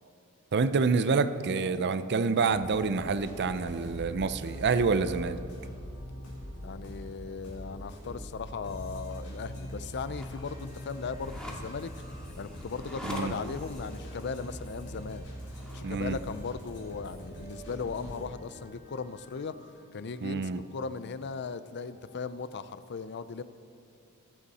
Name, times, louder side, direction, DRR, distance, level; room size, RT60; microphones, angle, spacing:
voice 1, 0.5-5.4 13.0-13.4 15.8-16.2 20.2-20.6, right 4 dB, 50° right, 13 dB, 0.5 m, -27 dB
sound 1, 2.5-22.2, equal, 90° left, 4.0 m, -43 dB
voice 2, 6.5-11.9 12.4-15.2 15.7-19.5 19.9-23.4, left 5 dB, 50° left, 13 dB, 0.5 m, -37 dB
sound 2, 10.0-15.9, equal, 5° left, 1.9 m, -46 dB
24.0 x 8.3 x 4.2 m, 2.5 s
head